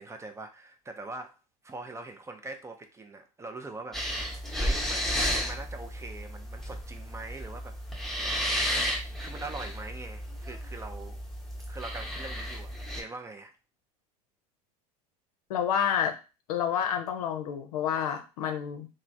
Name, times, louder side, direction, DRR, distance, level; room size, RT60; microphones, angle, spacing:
voice 1, 0.0-1.4 1.6-4.1 4.6-7.8 9.2-11.2 11.7-13.5, right 3 dB, 15° right, 0.4 m, -42 dB
sound 1, 3.9-13.0, equal, ahead, 0.9 m, -33 dB
voice 2, 15.5-16.1 16.5-18.9, left 8 dB, 75° left, 0.6 m, -29 dB
3.1 x 2.0 x 2.5 m
hypercardioid pair, 85°, 20 cm